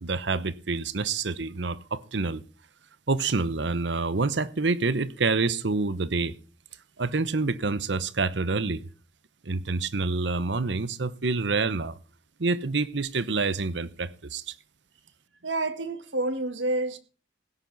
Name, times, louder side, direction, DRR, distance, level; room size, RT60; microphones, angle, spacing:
voice 1, 0.0-2.4 3.1-6.4 7.0-8.8 9.4-12.0 12.4-14.5, right 3 dB, 70° right, 0.9 m, -27 dB
voice 2, 15.4-17.0, right 2 dB, 85° right, 1.7 m, -28 dB
16.5 x 10.5 x 4.1 m
head